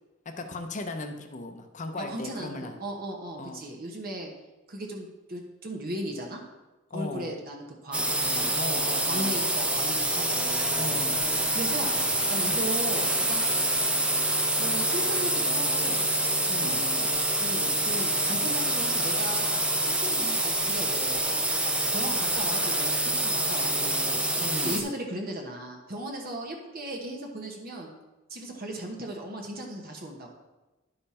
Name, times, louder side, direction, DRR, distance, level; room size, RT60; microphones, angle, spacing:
voice 1, 0.3-2.7 3.4-3.6 6.9-7.3 8.5-9.4 10.7-11.3 12.4-12.6 16.5-16.8 24.4-24.8, left 2 dB, 40° left, 5 dB, 0.7 m, -37 dB
voice 2, 2.0-4.3 4.7-6.4 6.9-8.6 9.0-11.1 11.5-11.9 12.3-13.5 14.6-16.1 16.6-21.4 21.9-24.3 24.6-27.9 28.3-30.3, right 1 dB, 50° right, 1 dB, 1.1 m, -37 dB
sound 1, 7.9-24.8, right 1 dB, 5° right, 0.6 m, -26 dB
10.5 x 5.5 x 4.2 m, 1.1 s
head